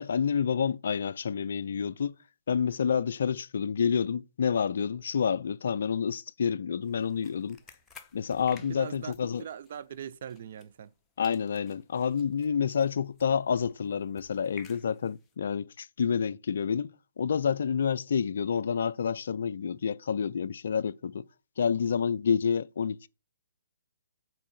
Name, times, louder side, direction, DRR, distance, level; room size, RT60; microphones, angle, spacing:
voice 1, 0.0-2.1 2.5-7.6 8.1-9.4 11.2-16.9 17.2-21.3 21.6-23.1, left 7 dB, 55° left, 0.3 m, -28 dB
sound 1, 6.8-11.0 11.2-15.3, left 4 dB, 10° left, 0.7 m, -55 dB
voice 2, 8.6-9.1 9.4-10.9, right 8 dB, 45° right, 0.4 m, -41 dB
6.1 x 4.5 x 5.4 m
figure-of-eight pair, 130°, 0 cm